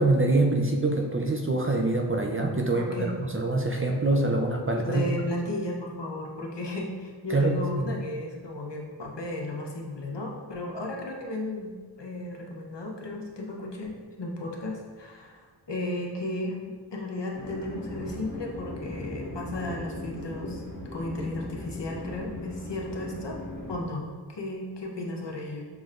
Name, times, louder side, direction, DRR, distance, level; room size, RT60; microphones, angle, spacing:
voice 1, 0.0-5.0 7.3-7.9, right 2 dB, 30° right, 1 dB, 0.4 m, -25 dB
voice 2, 2.8-3.2 4.8-20.6 20.9-23.4 23.7-24.0 24.3-25.7, left 1 dB, 65° left, -1 dB, 0.8 m, -34 dB
sound 1, 17.3-23.8, left 1 dB, 40° left, 1.2 m, -38 dB
6.0 x 3.2 x 2.4 m, 1.5 s
wide cardioid pair, 50°, 46 cm